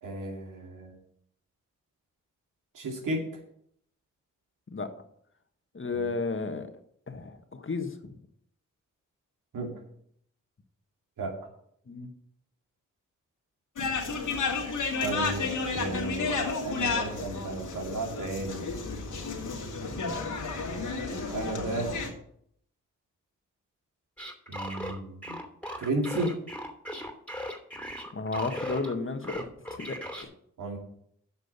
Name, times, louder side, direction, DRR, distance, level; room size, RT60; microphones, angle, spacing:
voice 1, 0.0-0.9 2.7-3.2 5.9-6.1 9.5-9.7 11.2-11.4 15.0-18.7 21.1-22.1 24.5-25.4 25.8-26.4 30.6-30.8, right 2 dB, 80° right, 2 dB, 2.5 m, -33 dB
voice 2, 5.7-6.7 7.1-8.2 11.9-12.1 28.1-29.5 29.8-30.3, left 3 dB, 40° left, 7 dB, 1.6 m, -33 dB
sound 1, 13.8-22.1, left 4 dB, 70° left, 2.3 m, -32 dB
sound 2, 24.2-28.9 29.2-30.2, equal, 5° left, 2.7 m, -37 dB
8.1 x 6.2 x 8.1 m, 0.68 s
supercardioid pair, 45°, 31 cm